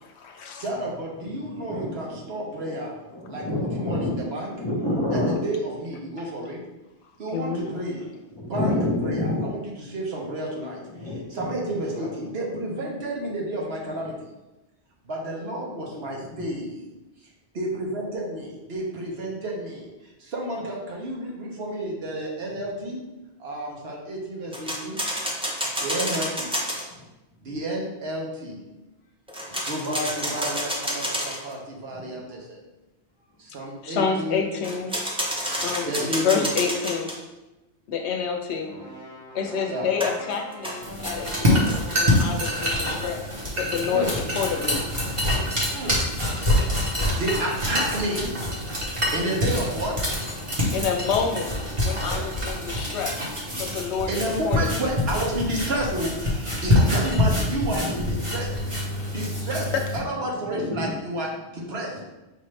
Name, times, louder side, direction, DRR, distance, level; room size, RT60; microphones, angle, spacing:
voice 1, 0.0-0.7 7.3-7.7 33.8-34.9 35.6-37.1 37.9-38.7 39.3-43.2 43.5-44.1 44.3-44.9 50.7-51.5 51.8-53.2 53.5-54.1 54.4-54.9, left 6 dB, 80° left, 3 dB, 0.9 m, -28 dB
voice 2, 0.6-3.0 3.3-4.5 5.1-6.6 7.2-10.8 11.3-14.3 15.0-16.9 17.2-17.3 17.5-23.1 23.4-25.0 25.8-26.6 27.4-28.6 29.5-32.6 33.4-34.5 35.8-36.5 39.7-39.9 43.9-44.1 45.7-46.1 47.0-48.8 49.1-50.3 54.1-58.8 59.1-62.0, right 1 dB, 65° right, -1 dB, 1.1 m, -31 dB
voice 3, 1.5-2.8 3.1-5.4 8.3-9.5 10.9-11.5 11.9-12.1 16.2-16.5 24.9-25.0 27.5-27.6 31.9-32.1 53.1-53.7 57.7-58.1 60.5-60.9, left 1 dB, 25° left, -4 dB, 1.0 m, -29 dB
sound 1, 24.5-26.8 29.3-31.5 34.6-37.2 40.0-42.8, equal, 10° right, 0.4 m, -29 dB
sound 2, 38.6-42.6, equal, 80° right, 2.0 m, -42 dB
sound 3, 40.8-60.0, left 1 dB, 30° right, 1.0 m, -26 dB
5.2 x 2.6 x 3.2 m, 1.0 s
omnidirectional pair, 1.1 m